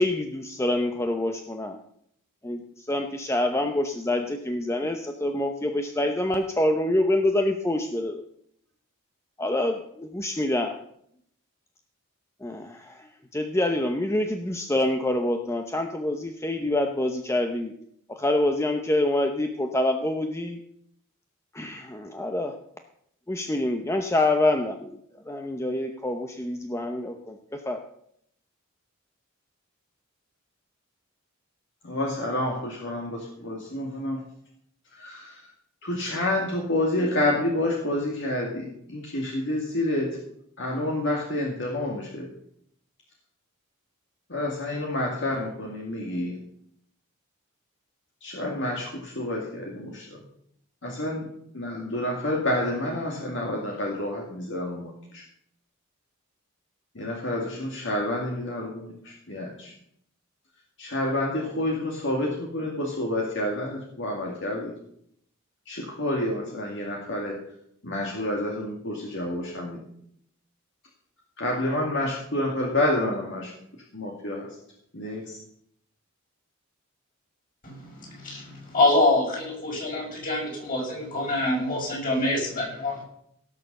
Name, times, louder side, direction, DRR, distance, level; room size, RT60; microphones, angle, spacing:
voice 1, 0.0-1.8 2.4-8.2 9.4-10.8 12.4-17.7 18.1-20.6 21.5-22.6 23.3-24.9 25.3-27.8, left 1 dB, 15° left, 5 dB, 0.8 m, -26 dB
voice 2, 31.8-34.2 34.9-35.4 35.8-40.1 40.6-42.3 44.3-46.4 48.2-50.2 50.8-51.3 51.5-55.2 56.9-59.7 60.8-64.7 65.7-67.3 67.8-69.8 71.4-73.5 73.9-74.5 74.9-75.4, left 1 dB, 60° left, -1 dB, 2.2 m, -29 dB
voice 3, 78.2-83.0, left 2 dB, 40° left, -3 dB, 6.4 m, -25 dB
17.0 x 6.7 x 6.7 m, 0.71 s
head